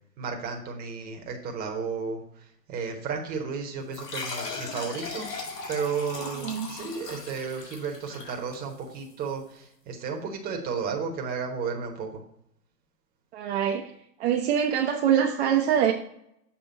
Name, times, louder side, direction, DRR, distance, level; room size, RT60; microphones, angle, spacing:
voice 1, 0.2-5.3 5.7-12.2, right 5 dB, 20° right, 2 dB, 1.0 m, -33 dB
sound 1, 3.9-9.1, left 3 dB, 70° left, 2.2 m, -38 dB
voice 2, 6.2-6.7 13.3-13.9 14.2-15.9, right 9 dB, 40° right, 1 dB, 0.7 m, -24 dB
7.1 x 3.4 x 6.2 m, 0.73 s
hypercardioid pair, 125°, 50 cm